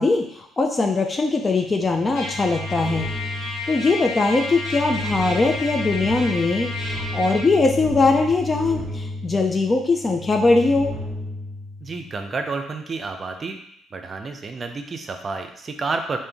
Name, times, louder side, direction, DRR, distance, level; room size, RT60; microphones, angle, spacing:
voice 1, 0.0-3.1 3.7-10.9, left 3 dB, 30° left, 3 dB, 0.4 m, -21 dB
sound 1, 1.7-12.3, left 1 dB, 15° right, 1.5 m, -33 dB
Trumpet, 2.1-7.5, left 2 dB, 65° left, 1.5 m, -32 dB
voice 2, 11.8-13.6 13.9-16.2, right 3 dB, 40° right, 6 dB, 0.5 m, -30 dB
3.7 x 2.6 x 3.4 m, 0.70 s
supercardioid pair, 65°, 0 cm